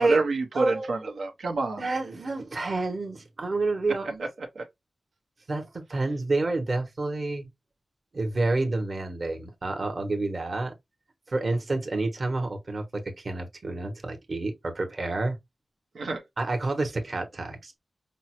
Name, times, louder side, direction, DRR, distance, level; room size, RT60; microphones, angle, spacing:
voice 1, 0.0-1.9 4.2-4.3 4.5-4.6 15.9-16.2, right 3 dB, 90° right, 0.8 m, -28 dB
voice 2, 0.5-0.9 1.8-4.2 5.5-7.5 8.1-10.7 11.3-15.4 16.4-17.8, right 2 dB, 45° right, 1.0 m, -29 dB
5.3 x 2.0 x 3.0 m
wide cardioid pair, 120°, 0 cm